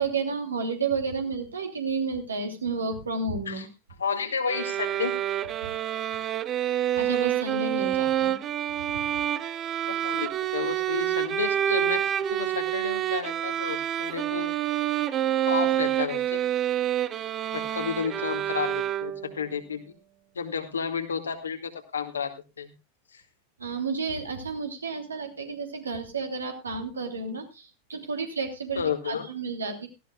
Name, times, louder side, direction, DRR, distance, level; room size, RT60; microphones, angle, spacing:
voice 1, 0.0-3.7 5.6-5.7 7.0-8.4 8.9-9.0 23.6-29.9, right 4 dB, 75° right, 5 dB, 3.0 m, -31 dB
voice 2, 4.0-5.1 9.8-12.0 12.3-14.5 15.5-16.4 17.5-19.8 20.3-22.7 23.1-23.2 28.8-29.3, left 6 dB, 70° left, 6 dB, 2.2 m, -31 dB
sound 1, 4.5-19.4, right 11 dB, 30° right, 0.9 m, -27 dB
18.0 x 15.0 x 2.4 m, 0.27 s
figure-of-eight pair, 90°, 0 cm